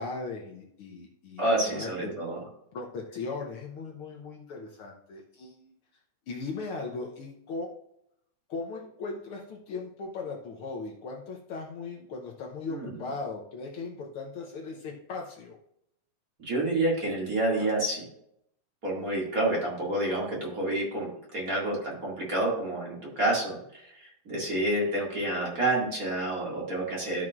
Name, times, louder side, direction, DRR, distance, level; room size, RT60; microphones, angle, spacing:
voice 1, 0.0-2.1 2.7-5.7 6.3-7.7 8.5-15.6, left 3 dB, 70° left, 1 dB, 1.3 m, -38 dB
voice 2, 1.4-2.4 12.7-13.0 16.4-18.0 18.8-27.2, right 1 dB, 30° right, -4 dB, 2.4 m, -29 dB
12.5 x 6.0 x 2.5 m, 0.76 s
omnidirectional pair, 3.4 m